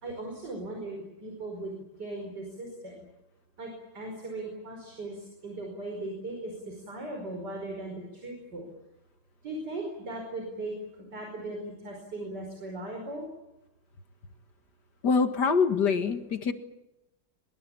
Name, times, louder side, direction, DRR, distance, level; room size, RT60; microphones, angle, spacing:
voice 1, 0.0-3.0 3.6-8.7 9.4-10.7 11.1-13.3, right 2 dB, 60° right, 2 dB, 5.7 m, -38 dB
voice 2, 15.0-16.5, left 5 dB, 60° left, 9 dB, 2.3 m, -24 dB
23.5 x 22.5 x 8.7 m, 0.95 s
omnidirectional pair, 2.0 m